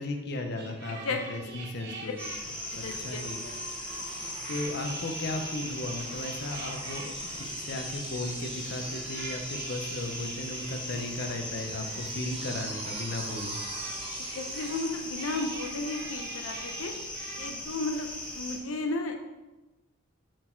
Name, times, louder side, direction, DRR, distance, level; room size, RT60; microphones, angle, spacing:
voice 1, 0.0-2.3 2.8-3.4 4.5-13.6, left 2 dB, 55° left, 4 dB, 0.7 m, -36 dB
sound 1, 0.6-17.5, right 3 dB, 55° right, 1.0 m, -45 dB
voice 2, 0.9-1.5 1.9-2.0 2.7-3.3 4.1-4.3 14.3-16.9 17.4-19.2, left 3 dB, 90° left, 4 dB, 0.6 m, -34 dB
sound 2, 2.2-18.6, left 1 dB, 5° left, 0.8 m, -39 dB
sound 3, 2.2-16.2 17.6-17.7, right 3 dB, 25° right, 0.8 m, -45 dB
6.3 x 4.2 x 4.4 m, 1.1 s
head